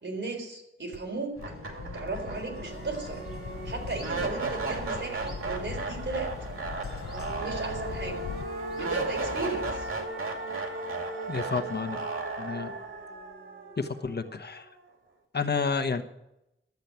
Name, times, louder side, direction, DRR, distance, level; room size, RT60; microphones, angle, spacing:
voice 1, 0.0-1.4 1.9-3.2 3.6-6.3 7.3-8.3 8.8-9.9, right 3 dB, 60° right, 2 dB, 4.0 m, -35 dB
sound 1, 0.9-1.0 1.4-14.5, right 3 dB, 90° right, 2.4 m, -35 dB
sound 2, 1.4-8.4, left 6 dB, 85° left, 0.7 m, -41 dB
sound 3, 2.6-10.0, left 1 dB, 5° right, 4.2 m, -45 dB
voice 2, 11.3-12.0 12.4-12.7 13.8-14.6 15.3-16.0, left 5 dB, 50° left, 7 dB, 1.1 m, -30 dB
12.0 x 8.4 x 9.2 m, 0.88 s
wide cardioid pair, 80°, 21 cm